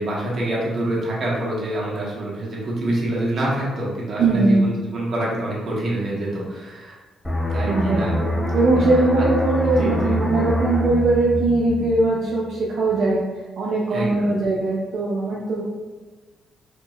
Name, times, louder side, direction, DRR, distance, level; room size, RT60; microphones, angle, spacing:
voice 1, 0.0-7.0 7.5-8.2 8.6-8.9 9.2-9.3 9.7-10.2 13.9-14.3, right 1 dB, 45° right, -5 dB, 1.4 m, -26 dB
voice 2, 4.2-4.7 7.6-13.2 13.6-15.6, right 3 dB, 70° right, -5 dB, 0.6 m, -20 dB
sound 1, 7.2-12.6 13.0-13.2, left 1 dB, 10° left, 0.7 m, -25 dB
4.5 x 3.0 x 2.5 m, 1.2 s
cardioid pair, 90°, 0 cm